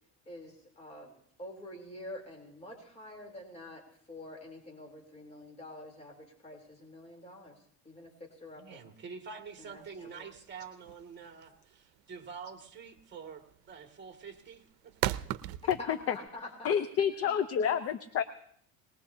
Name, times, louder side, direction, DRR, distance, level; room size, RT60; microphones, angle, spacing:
voice 1, 0.2-1.1 1.4-3.8 4.1-7.6 7.8-8.8 9.6-10.3 15.8-16.8 17.2-17.6, left 1 dB, 20° left, 1 dB, 3.5 m, -47 dB
voice 2, 8.5-15.1 15.5-15.6, right 6 dB, 30° right, 3 dB, 2.3 m, -47 dB
sound 1, 9.5-16.3, right 15 dB, 85° right, 0.7 m, -38 dB
voice 3, 15.7-16.1 16.6-18.2, left 8 dB, 45° left, 10 dB, 0.8 m, -29 dB
22.0 x 20.0 x 2.8 m, 0.65 s
cardioid pair, 125°, 35 cm